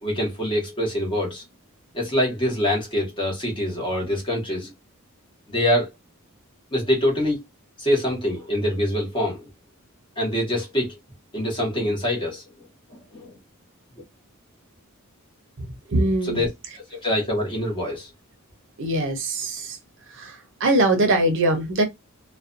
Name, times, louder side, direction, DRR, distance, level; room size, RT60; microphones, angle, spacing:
voice 1, 0.0-1.4 1.9-4.7 5.5-5.9 6.7-7.4 7.8-9.5 10.2-11.0 11.3-12.4 12.9-13.3 16.2-16.5 16.9-18.1, left 1 dB, 25° left, 1.0 m, -24 dB
voice 2, 15.6-16.4 18.8-19.8 20.2-21.8, right 1 dB, 60° right, 0.6 m, -22 dB
2.5 x 2.2 x 2.5 m
head